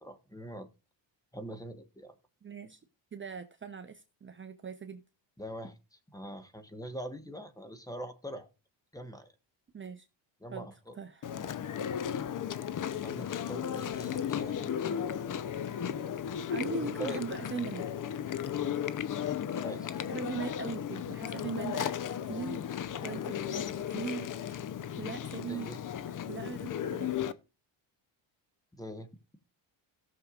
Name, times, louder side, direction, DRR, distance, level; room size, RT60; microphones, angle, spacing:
voice 1, 0.0-0.7 1.3-2.1 5.4-8.5 8.9-9.3 10.4-11.0 12.0-12.1 12.9-15.0 16.8-17.2 18.6-18.8 19.6-20.0 25.5-25.8 28.7-29.1, equal, 10° left, 1.3 m, -43 dB
voice 2, 2.4-2.8 3.1-5.0 9.7-10.1 10.5-10.7 10.9-11.2 16.5-17.9 20.1-22.0 22.3-24.3 25.0-25.7 26.1-27.2, right 6 dB, 25° right, 0.8 m, -40 dB
Chewing mastication, 11.2-27.3, left 9 dB, 45° left, 0.7 m, -35 dB
17.5 x 6.5 x 2.4 m
cardioid pair, 115°, 46 cm